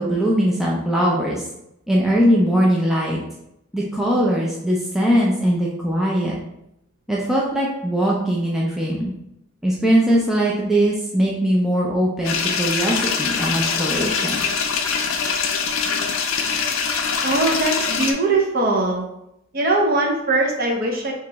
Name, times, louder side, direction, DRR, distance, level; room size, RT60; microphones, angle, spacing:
voice 1, 0.0-1.4 1.9-3.2 3.7-6.4 7.1-9.1 9.6-14.4, equal, ahead, -5 dB, 0.3 m, -20 dB
sound 1, 12.2-18.1, left 5 dB, 70° left, 0.4 m, -23 dB
voice 2, 17.2-19.0 19.5-21.1, right 2 dB, 45° right, 0 dB, 0.6 m, -20 dB
2.9 x 2.9 x 3.4 m, 0.83 s
head